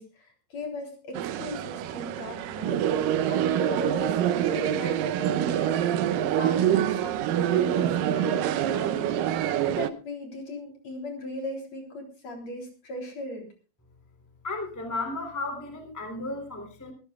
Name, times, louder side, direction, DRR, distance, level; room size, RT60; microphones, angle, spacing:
voice 1, 0.0-4.2 4.5-6.0 6.4-9.4 9.7-13.5, left 1 dB, 50° left, 3 dB, 4.7 m, -38 dB
sound 1, 1.1-9.9, right 10 dB, 80° right, 2.4 m, -26 dB
voice 2, 14.4-16.9, left 2 dB, 5° left, 5 dB, 2.8 m, -34 dB
24.0 x 15.0 x 2.4 m, 0.34 s
omnidirectional pair, 4.0 m